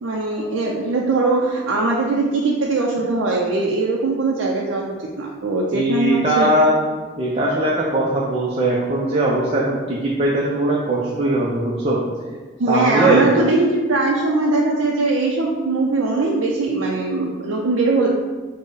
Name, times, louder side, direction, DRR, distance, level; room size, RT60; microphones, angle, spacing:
voice 1, 0.0-6.5 12.6-18.1, right 3 dB, 90° right, -2 dB, 0.4 m, -21 dB
voice 2, 5.7-6.8 7.2-12.0 12.7-13.3, right 1 dB, 30° right, -4 dB, 0.4 m, -20 dB
4.4 x 2.1 x 4.6 m, 1.4 s
head